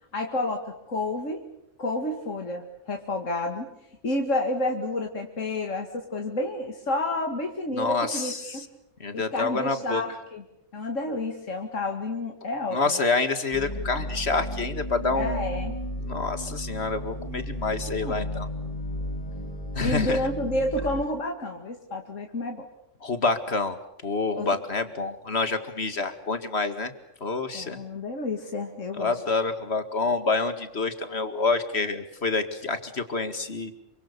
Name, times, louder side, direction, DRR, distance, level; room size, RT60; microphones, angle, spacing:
voice 1, 0.1-0.6 0.9-1.5 1.8-3.7 4.0-8.7 9.1-10.4 10.7-13.0 15.1-15.8 17.9-18.3 19.8-22.7 24.4-24.6 27.5-29.2, left 2 dB, 80° left, 3 dB, 2.6 m, -30 dB
voice 2, 7.7-8.7 9.0-10.0 12.7-15.4 16.0-18.5 19.8-20.2 23.0-23.8 24.0-26.9 27.2-27.8 29.0-33.7, left 3 dB, 55° left, 9 dB, 2.4 m, -27 dB
sound 1, 13.5-21.0, equal, 30° left, 2.9 m, -34 dB
27.5 x 25.5 x 6.9 m, 0.79 s
omnidirectional pair, 1.3 m